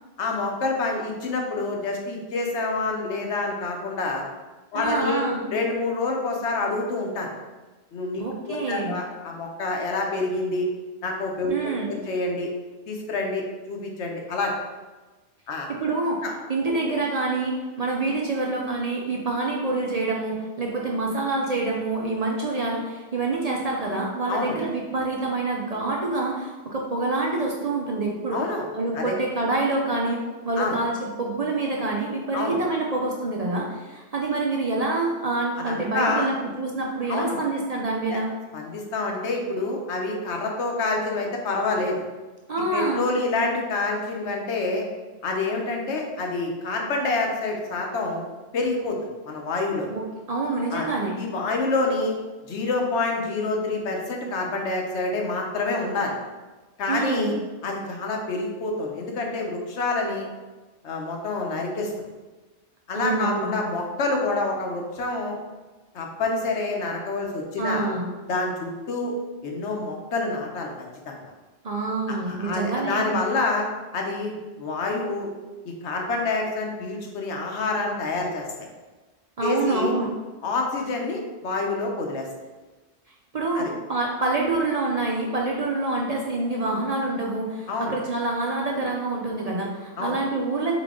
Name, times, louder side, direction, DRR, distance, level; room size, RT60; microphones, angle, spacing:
voice 1, 0.2-4.2 4.7-5.3 5.5-7.3 7.9-10.7 11.0-12.5 12.9-14.6 15.5-15.7 16.2-16.3 24.3-24.6 28.3-28.6 28.9-29.2 30.6-30.7 32.3-32.6 35.6-36.3 37.1-37.4 38.1-38.2 38.5-42.0 42.7-44.8 45.2-48.2 48.5-49.9 50.7-50.9 51.2-52.1 52.5-56.2 56.8-57.3 57.6-60.3 60.8-61.9 62.9-65.4 65.9-67.9 68.3-69.1 69.4-70.7 71.1-71.3 72.1-73.7 73.9-75.3 75.8-78.4 79.4-79.9 80.4-82.3 83.5-83.7 87.7-87.9 90.0-90.1, left 3 dB, 85° left, 1 dB, 1.1 m, -27 dB
voice 2, 4.7-5.4 8.2-9.0 11.5-12.0 15.7-16.2 16.5-28.4 28.7-38.3 42.5-43.0 49.9-50.0 50.3-51.2 56.9-57.3 62.9-63.5 67.6-68.1 71.6-73.2 79.4-80.1 83.3-90.8, right 2 dB, 45° right, -2 dB, 0.5 m, -26 dB
3.8 x 3.6 x 3.7 m, 1.2 s
omnidirectional pair, 1.2 m